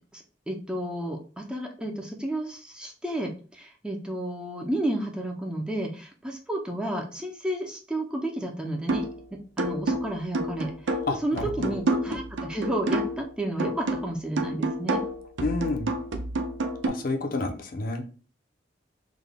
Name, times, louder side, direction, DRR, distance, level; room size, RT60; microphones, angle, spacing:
voice 1, 0.1-9.1 9.3-11.0 11.2-15.0, right 1 dB, 5° right, 1 dB, 0.4 m, -32 dB
sound 1, 8.9-9.2 9.6-13.3 13.6-16.9, right 2 dB, 85° right, 0.6 m, -29 dB
voice 2, 11.1-11.7 15.4-15.9 16.9-18.0, left 3 dB, 50° left, 3 dB, 0.6 m, -29 dB
3.7 x 2.2 x 3.4 m, 0.38 s
head